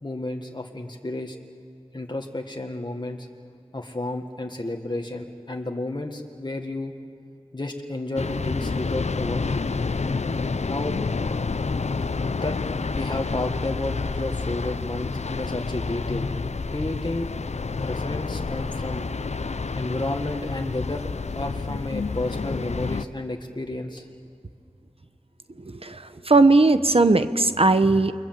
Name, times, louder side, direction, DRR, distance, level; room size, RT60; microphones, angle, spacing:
voice 1, 0.0-1.4 1.9-3.3 3.7-6.9 7.5-9.8 10.7-10.9 12.3-12.6 12.9-16.3 16.7-17.3 17.8-19.1 19.8-21.1 21.4-24.1, left 2 dB, 40° left, 3 dB, 1.7 m, -31 dB
sound 1, 8.2-23.1, left 4 dB, 80° left, 0.6 m, -29 dB
voice 2, 25.6-28.1, right 3 dB, 60° right, 10 dB, 1.0 m, -18 dB
29.0 x 23.0 x 7.6 m, 2.4 s
wide cardioid pair, 45°, 11 cm